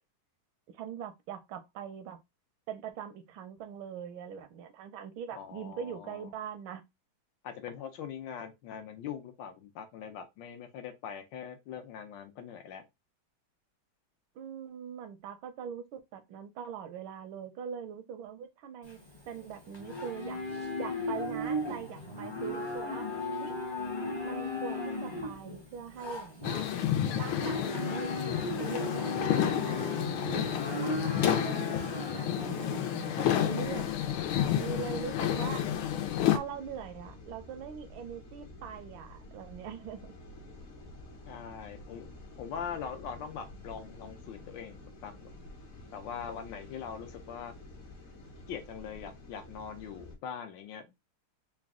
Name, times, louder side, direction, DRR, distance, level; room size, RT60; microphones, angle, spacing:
voice 1, 0.7-2.2 2.7-6.8 14.3-20.4 20.8-23.1 23.4-23.5 24.2-26.7 27.1-35.7 36.3-40.1, right 8 dB, 80° right, 1.4 m, -42 dB
voice 2, 5.3-6.3 7.4-12.9 41.3-42.1 42.4-45.3 45.9-47.5 48.5-50.9, left 7 dB, 75° left, 1.2 m, -42 dB
Livestock farm animals working animals, 18.8-33.6, left 2 dB, 30° left, 0.4 m, -36 dB
sound 1, 26.4-36.4, left 11 dB, 90° left, 1.4 m, -30 dB
sound 2, 33.6-50.2, left 1 dB, 50° left, 0.8 m, -50 dB
4.0 x 2.2 x 3.5 m
omnidirectional pair, 2.2 m